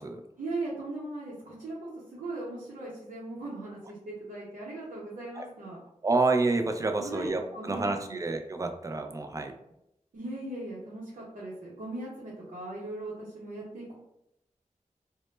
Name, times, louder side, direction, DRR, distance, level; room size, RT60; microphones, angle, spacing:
voice 1, 0.4-5.8 7.0-8.2 10.1-13.9, right 2 dB, 90° right, -8 dB, 0.7 m, -39 dB
voice 2, 6.0-9.5, right 3 dB, 25° right, 5 dB, 0.3 m, -28 dB
2.0 x 2.0 x 3.1 m, 0.82 s
cardioid pair, 55°, 14 cm